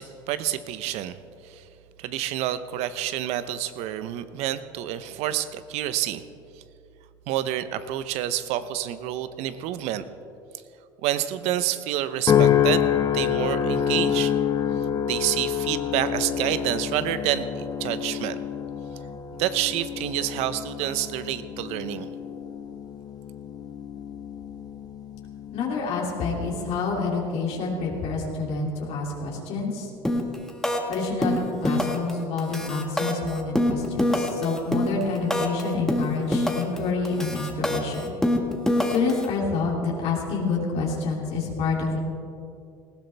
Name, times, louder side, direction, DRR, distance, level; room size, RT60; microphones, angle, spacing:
voice 1, 0.0-1.7 2.0-6.2 6.6-6.7 7.3-10.0 11.0-14.3 15.1-18.4 19.4-22.1, right 12 dB, 65° right, 13 dB, 0.8 m, -28 dB
sound 1, 12.3-26.7 27.3-27.7, left 9 dB, 35° left, 0.9 m, -27 dB
voice 2, 25.5-29.9 30.9-38.1 38.8-42.0, left 4 dB, 60° left, -2 dB, 2.8 m, -28 dB
sound 2, 30.0-30.3 30.6-30.9 31.2-32.1 32.4-35.6 35.9-36.8 37.0-39.2, left 1 dB, 5° left, 1.7 m, -24 dB
19.5 x 15.5 x 3.4 m, 2.6 s
supercardioid pair, 85°, 12 cm